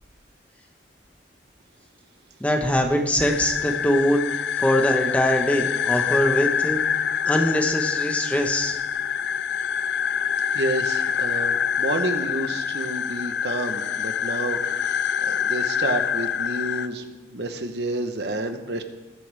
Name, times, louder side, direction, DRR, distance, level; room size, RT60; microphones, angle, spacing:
voice 1, 2.4-6.8 7.3-8.8, equal, 10° left, 3 dB, 1.2 m, -23 dB
sound 1, 3.2-16.9, left 8 dB, 75° left, 0.4 m, -26 dB
voice 2, 10.5-18.8, right 1 dB, 70° right, 7 dB, 1.1 m, -30 dB
20.5 x 8.8 x 3.5 m, 1.2 s
head